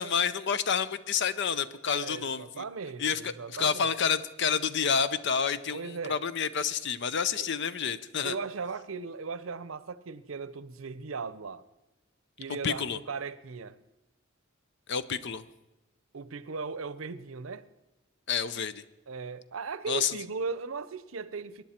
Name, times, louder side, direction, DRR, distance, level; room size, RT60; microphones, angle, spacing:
voice 1, 0.0-2.6 3.0-8.3 12.6-13.0 14.9-15.4 18.3-18.8 19.9-20.1, left 6 dB, 60° left, 0.6 m, -29 dB
voice 2, 1.9-3.9 5.7-6.2 7.4-7.5 7.8-8.0 8.2-11.6 12.4-13.8 16.1-17.7 19.1-21.6, right 4 dB, 75° right, 0.7 m, -37 dB
23.0 x 10.5 x 4.4 m
head